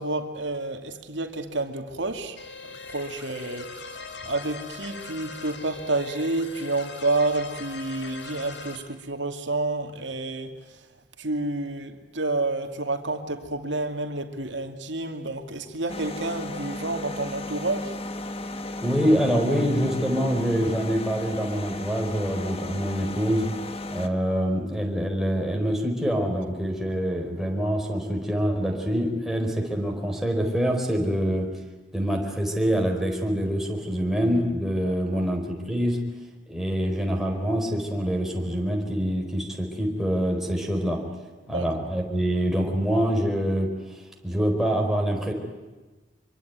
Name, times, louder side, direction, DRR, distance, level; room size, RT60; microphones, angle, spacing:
voice 1, 0.0-4.0 4.2-10.6 11.2-18.0 34.8-35.2 41.5-41.7, right 2 dB, 75° right, 2.6 m, -29 dB
sound 1, 2.4-8.8, left 4 dB, 70° left, 3.7 m, -40 dB
sound 2, 15.9-24.1, left 2 dB, 30° left, 1.5 m, -35 dB
voice 2, 18.8-23.5 23.9-31.6 31.9-36.0 36.5-41.0 41.5-43.7 44.2-45.3, equal, ahead, 4.5 m, -25 dB
25.5 x 24.5 x 9.5 m
head